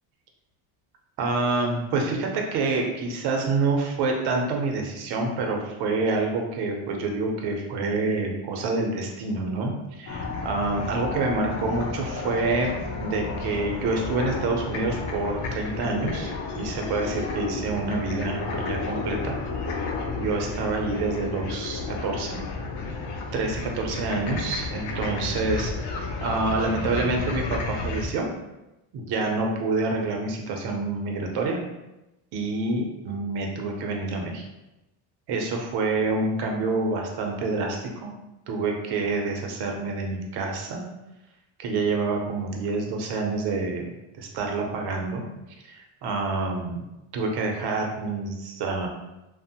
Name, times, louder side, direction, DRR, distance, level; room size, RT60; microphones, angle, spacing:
voice 1, 1.2-19.4 20.2-22.4 23.3-25.7 26.2-28.3 28.9-31.6 32.3-34.5 35.3-38.1 38.5-40.8 41.6-43.9 44.1-45.2 45.7-46.8 47.1-48.9, right 3 dB, 50° right, 1 dB, 0.6 m, -27 dB
sound 1, 10.1-28.1, left 4 dB, 55° left, 0.5 m, -32 dB
2.8 x 2.1 x 2.7 m, 0.97 s
cardioid pair, 165°, 50 cm